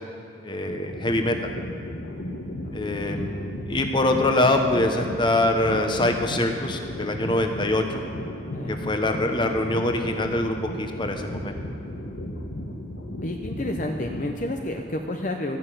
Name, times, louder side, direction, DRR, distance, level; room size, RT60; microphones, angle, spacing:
voice 1, 0.4-1.5 2.7-8.0 8.7-11.6, left 1 dB, 25° left, 4 dB, 1.0 m, -24 dB
sound 1, 0.6-14.8, left 1 dB, 80° left, 1.2 m, -35 dB
voice 2, 2.6-3.3 8.5-8.8 13.2-15.6, left 1 dB, 45° left, 3 dB, 0.7 m, -31 dB
13.5 x 6.5 x 9.0 m, 2.8 s
head